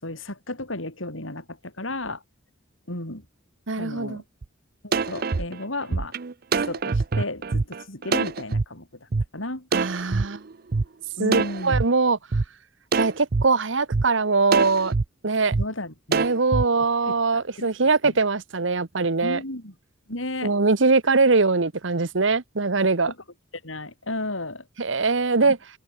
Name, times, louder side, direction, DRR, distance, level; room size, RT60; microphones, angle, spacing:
voice 1, 0.0-2.2 2.9-3.2 3.8-4.2 4.8-6.1 6.5-9.7 11.2-11.8 15.6-16.3 16.8-18.2 19.2-19.7 20.1-20.5 23.1-23.2 23.6-24.7 25.4-25.5, left 2 dB, 75° left, 6.5 m, -34 dB
voice 2, 3.7-4.2 9.7-10.4 11.2-12.2 13.0-14.9 15.2-15.5 16.1-19.4 20.4-23.1 24.8-25.6, right 3 dB, 70° right, 1.1 m, -22 dB
sound 1, 4.4-4.5 4.9-8.6 9.1-9.2 9.7-10.8 11.3-11.8 12.3-12.4 12.9-13.4 13.9-14.0 14.5-15.0 15.5-15.6 16.1-16.6, right 4 dB, 50° right, 0.5 m, -24 dB
head